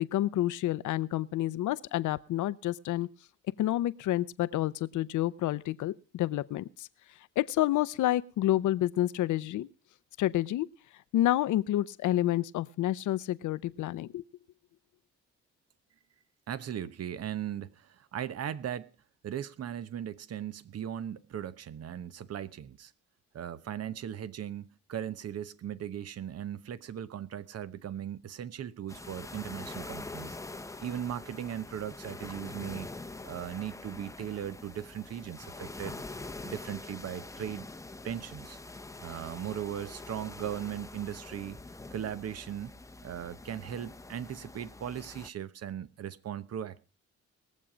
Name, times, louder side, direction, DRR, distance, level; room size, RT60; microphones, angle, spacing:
voice 1, 0.0-3.1 3.6-6.9 7.4-9.7 10.2-10.7 11.1-14.2, left 14 dB, 75° left, 0.7 m, -29 dB
voice 2, 16.5-18.9 19.2-22.9 23.3-30.4 30.8-32.9 33.2-36.0 36.4-37.7 38.0-38.6 39.0-41.6 41.9-42.8 43.0-46.8, right 9 dB, 55° right, 0.9 m, -38 dB
sound 1, 28.9-45.3, left 2 dB, 10° left, 0.8 m, -45 dB
20.5 x 7.4 x 5.1 m
cardioid pair, 90°, 30 cm